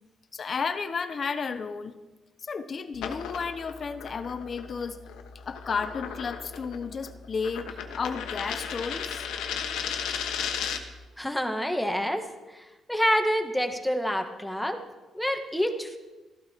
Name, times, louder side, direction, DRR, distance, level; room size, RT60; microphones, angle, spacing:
voice 1, 0.3-2.0 2.4-5.0 5.4-9.3, left 5 dB, 45° left, 10 dB, 0.7 m, -33 dB
sound 1, 2.9-11.0, left 7 dB, 85° left, 1.1 m, -35 dB
voice 2, 11.2-14.8 15.1-16.0, equal, 5° left, 5 dB, 1.5 m, -28 dB
14.0 x 12.0 x 4.5 m, 1.1 s
cardioid pair, 90°, 0 cm